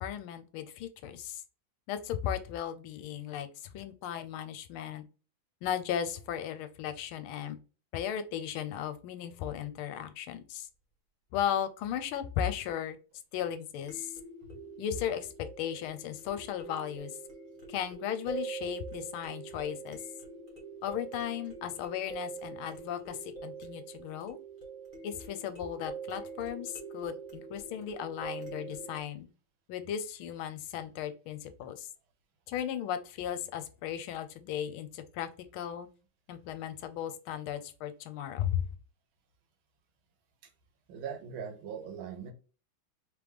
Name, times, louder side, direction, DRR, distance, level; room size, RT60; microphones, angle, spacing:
voice 1, 0.0-1.4 1.9-3.5 3.7-5.0 5.6-7.6 7.9-10.7 11.3-13.0 13.3-14.1 14.8-17.1 17.7-20.0 20.8-24.4 25.0-29.3 29.7-31.9 32.5-35.9 36.3-38.6, left 9 dB, 85° left, 1.4 m, -36 dB
sound 1, 9.2-9.3 13.9-29.0, right 5 dB, 30° left, 1.3 m, -44 dB
voice 2, 40.9-42.3, right 7 dB, 75° right, 1.6 m, -40 dB
3.5 x 3.4 x 3.2 m
omnidirectional pair, 2.3 m